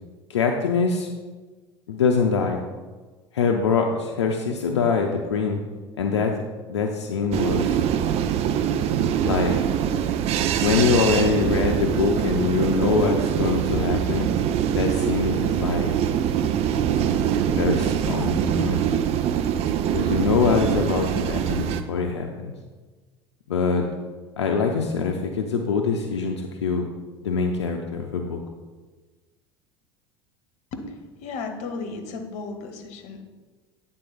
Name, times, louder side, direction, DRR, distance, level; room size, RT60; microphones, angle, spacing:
voice 1, 0.3-1.1 1.9-2.6 3.3-5.6 6.0-6.4 6.7-7.8 9.2-9.5 10.6-14.3 14.7-15.9 17.5-18.8 19.9-22.5 23.5-23.8 24.4-26.9 27.2-28.4, left 5 dB, 80° left, 2 dB, 0.5 m, -24 dB
sound 1, 7.3-21.8, right 9 dB, 45° right, 0.5 m, -23 dB
voice 2, 30.7-33.2, left 4 dB, 55° left, 6 dB, 0.9 m, -34 dB
8.9 x 3.8 x 3.9 m, 1.3 s
hypercardioid pair, 75°, 14 cm